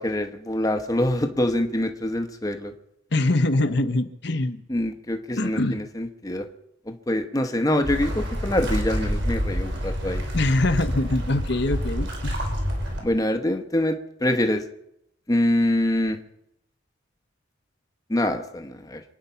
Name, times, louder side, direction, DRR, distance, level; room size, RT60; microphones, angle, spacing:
voice 1, 0.0-2.7 4.7-6.5 6.9-10.2 13.0-14.6 15.3-16.2 18.1-19.0, left 1 dB, 20° left, 5 dB, 1.0 m, -25 dB
voice 2, 3.1-4.6 5.4-5.8 10.3-12.4, left 2 dB, 60° left, 9 dB, 1.0 m, -23 dB
sound 1, 7.8-13.0, equal, 65° right, 4.8 m, -27 dB
26.0 x 9.6 x 5.7 m, 0.79 s
head